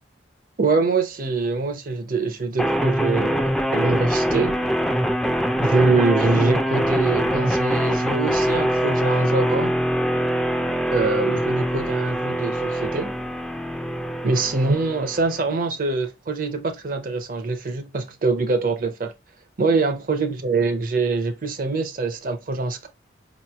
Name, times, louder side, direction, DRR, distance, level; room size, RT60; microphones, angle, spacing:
voice 1, 0.6-4.6 5.6-9.7 10.9-13.2 14.2-19.1 19.6-22.9, right 3 dB, 45° right, 0.6 m, -24 dB
sound 1, 2.6-15.6, equal, 5° left, 0.3 m, -23 dB
4.7 x 3.0 x 2.2 m
head